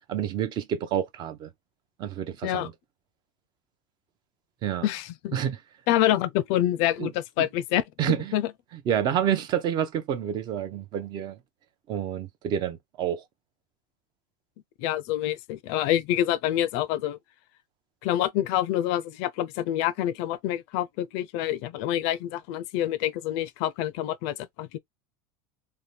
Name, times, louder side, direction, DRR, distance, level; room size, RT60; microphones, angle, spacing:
voice 1, 0.1-1.5 2.0-2.7 4.6-4.9 5.3-5.6 7.0-7.1 7.4-7.5 8.0-8.3 8.9-11.4 11.9-13.2, right 9 dB, 40° right, 0.6 m, -28 dB
voice 2, 4.8-5.4 5.9-8.5 14.8-17.2 18.0-24.8, left 12 dB, 60° left, 0.4 m, -27 dB
2.7 x 2.2 x 3.2 m
supercardioid pair, 140°, 11 cm